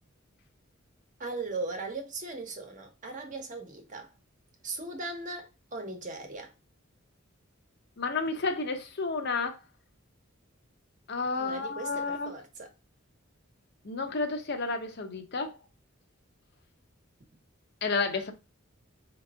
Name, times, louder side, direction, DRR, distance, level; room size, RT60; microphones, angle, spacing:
voice 1, 1.2-4.1 4.6-6.5 11.4-12.7, right 3 dB, 40° right, 1.1 m, -38 dB
voice 2, 8.0-9.6 11.1-12.3 13.8-15.6 17.8-18.3, left 4 dB, 55° left, 0.8 m, -31 dB
4.6 x 3.0 x 3.5 m
head